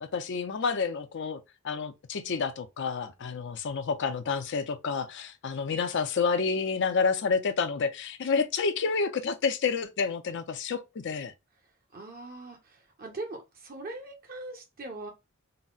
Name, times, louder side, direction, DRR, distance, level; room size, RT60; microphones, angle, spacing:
voice 1, 0.0-11.3, left 5 dB, 60° left, 0.5 m, -29 dB
voice 2, 11.9-15.1, right 2 dB, 45° right, 0.9 m, -41 dB
3.9 x 2.1 x 2.3 m
head